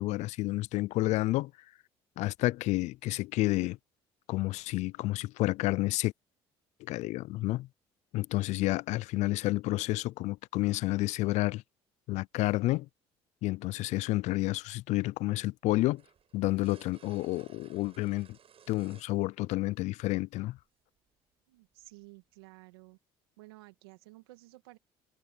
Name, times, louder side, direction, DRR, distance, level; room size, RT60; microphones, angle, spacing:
voice 1, 0.0-1.5 2.2-3.8 4.3-6.1 6.9-7.7 8.1-11.6 12.1-12.9 13.4-16.0 16.3-18.3 18.7-20.6, left 18 dB, 70° left, 0.5 m, -30 dB
sound 1, 16.0-19.2 20.2-20.3 21.9-22.0, right 8 dB, 50° right, 7.8 m, -58 dB
voice 2, 21.5-23.0 23.4-24.8, right 22 dB, 90° right, 2.2 m, -53 dB
supercardioid pair, 70°, 12 cm